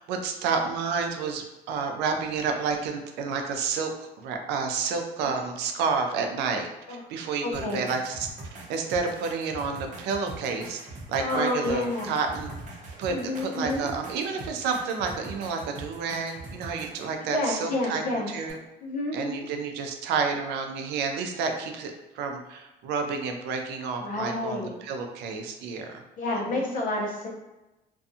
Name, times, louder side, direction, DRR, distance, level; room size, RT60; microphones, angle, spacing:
voice 1, 0.0-10.8 11.1-12.5 13.0-18.6 19.1-25.9 26.6-26.7, right 5 dB, 90° right, 4 dB, 0.4 m, -30 dB
voice 2, 7.4-7.8 11.2-12.1 13.1-13.9 17.3-18.3 18.8-19.5 24.0-24.7 26.2-27.3, left 2 dB, 50° left, -1 dB, 0.8 m, -29 dB
sound 1, 7.5-17.1 18.5-18.6, right 2 dB, 45° right, 0.8 m, -42 dB
2.5 x 2.3 x 2.6 m, 1.0 s
cardioid pair, 110°, 17 cm